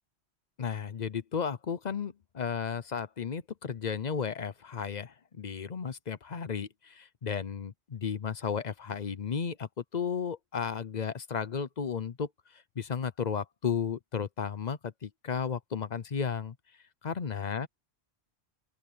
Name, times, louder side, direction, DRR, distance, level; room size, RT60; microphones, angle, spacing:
voice 1, 0.6-12.3 12.8-16.5 17.0-17.7, left 6 dB, 45° left, 0.8 m, -34 dB
open air
omnidirectional pair, 1.1 m